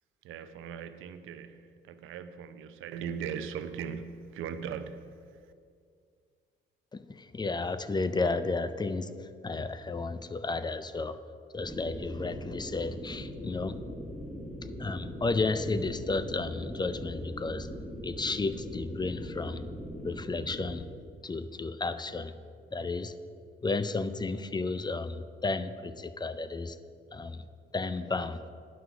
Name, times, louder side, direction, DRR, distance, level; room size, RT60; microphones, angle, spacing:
voice 1, 0.2-5.5, right 7 dB, 85° right, 11 dB, 0.6 m, -39 dB
voice 2, 6.9-11.2 11.5-13.8 14.8-17.7 18.0-19.6 20.0-20.9 21.2-22.3 22.7-23.1 23.6-26.8 27.1-27.4 27.7-28.4, left 3 dB, 20° left, 12 dB, 0.5 m, -32 dB
sound 1, 11.6-20.7, equal, ahead, 1.5 m, -41 dB
9.6 x 5.9 x 5.9 m, 2.2 s
cardioid pair, 90°, 20 cm